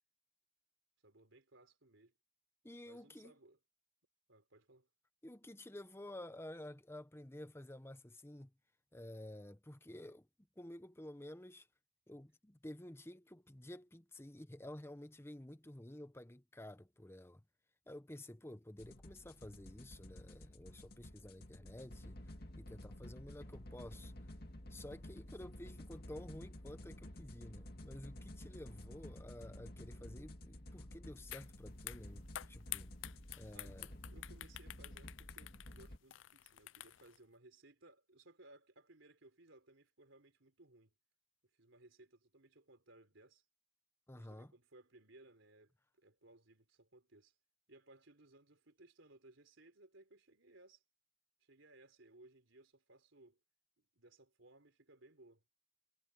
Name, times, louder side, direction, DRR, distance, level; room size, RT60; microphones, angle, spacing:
voice 1, 1.0-2.2 2.8-3.6 4.3-4.9 33.5-41.0 41.5-43.4 44.1-47.3 47.7-50.8 51.4-53.4 53.8-55.4, right 2 dB, 75° right, 3.9 m, -63 dB
voice 2, 2.6-3.3 5.2-8.5 8.9-10.3 10.6-11.7 12.1-17.4 17.9-24.1 24.7-32.9 33.3-33.9 44.1-44.5, left 1 dB, 10° left, 0.9 m, -52 dB
sound 1, 18.8-36.0, left 1 dB, 50° left, 2.2 m, -52 dB
sound 2, 31.3-31.5 31.8-37.2, left 14 dB, 70° left, 0.4 m, -49 dB
head